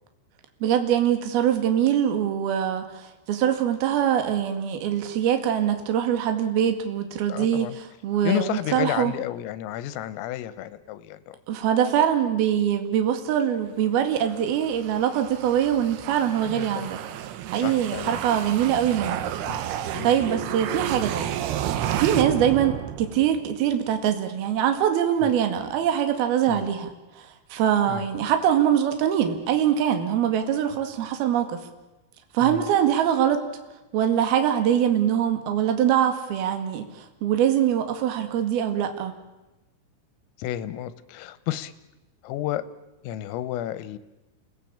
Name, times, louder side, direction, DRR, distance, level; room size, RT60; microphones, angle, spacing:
voice 1, 0.6-9.1 11.5-17.0 17.3-19.2 20.0-21.3 21.9-26.9 27.2-31.6 32.3-33.4 33.9-39.1, right 9 dB, 55° right, 6 dB, 3.5 m, -23 dB
voice 2, 7.3-7.8 8.2-11.4 16.5-16.7 17.6-18.2 19.5-19.6 19.9-20.1 25.2-25.3 26.5-26.7 27.9-28.1 32.4-32.7 40.4-41.7 42.2-42.7 43.0-44.0, left 13 dB, 90° left, 14 dB, 3.7 m, -31 dB
sound 1, 14.1-23.5, right 11 dB, 75° right, 2.5 m, -31 dB
28.5 x 18.0 x 8.7 m, 1.0 s
omnidirectional pair, 5.8 m